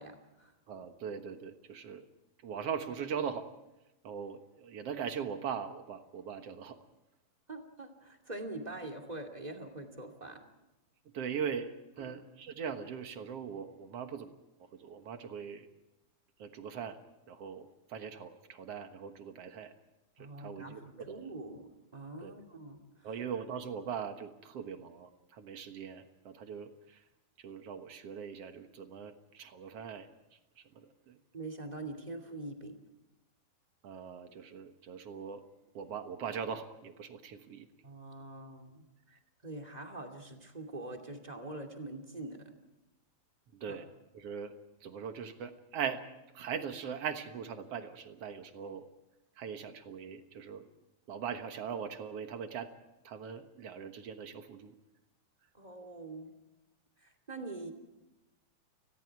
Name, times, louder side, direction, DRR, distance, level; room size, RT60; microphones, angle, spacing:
voice 1, 0.0-0.5 7.5-10.4 12.0-12.2 20.2-23.1 31.3-32.8 37.8-38.9 39.4-42.5 43.7-43.8 55.5-56.3 57.0-57.7, right 2 dB, 15° right, 3 dB, 2.0 m, -44 dB
voice 2, 0.7-2.0 2.4-3.5 4.0-6.8 11.1-14.3 14.6-15.7 16.4-17.0 17.3-19.7 20.2-20.8 21.1-21.3 22.2-22.3 23.0-27.0 27.4-31.2 33.8-35.4 35.7-37.7 43.5-43.9 44.1-44.5 44.8-46.1 46.3-48.9 49.4-50.7 51.1-52.7 53.0-54.8, right 7 dB, 60° right, 7 dB, 1.8 m, -41 dB
30.0 x 20.5 x 4.7 m, 1.0 s
omnidirectional pair, 4.2 m